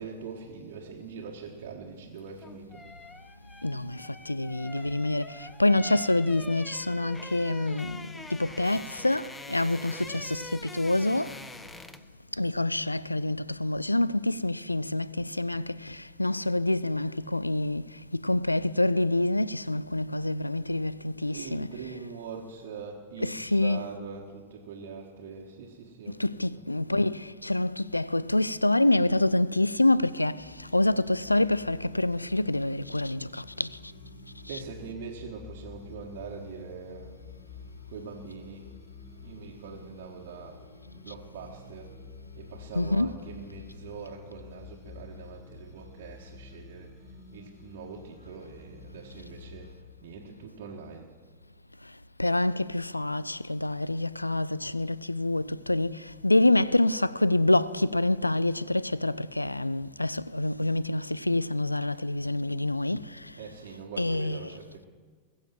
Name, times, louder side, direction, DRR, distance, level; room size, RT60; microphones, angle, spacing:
voice 1, 0.0-2.8 21.2-26.7 34.5-37.3 37.9-38.7 39.2-40.6 40.9-41.9 42.3-46.9 47.3-51.1 63.1-64.9, right 5 dB, 55° right, 1.6 m, -43 dB
sound 1, 2.2-12.2 12.5-12.7, left 2 dB, 10° left, 0.7 m, -45 dB
voice 2, 3.6-11.5 12.3-21.9 23.2-24.0 26.1-33.9 34.4-34.6 41.0-41.2 42.7-43.2 51.8-51.9 52.2-63.4 64.0-64.6, left 2 dB, 85° left, 0.3 m, -27 dB
sound 2, 30.4-49.7, left 5 dB, 25° left, 2.9 m, -49 dB
21.5 x 7.2 x 7.5 m
figure-of-eight pair, 90°, 0 cm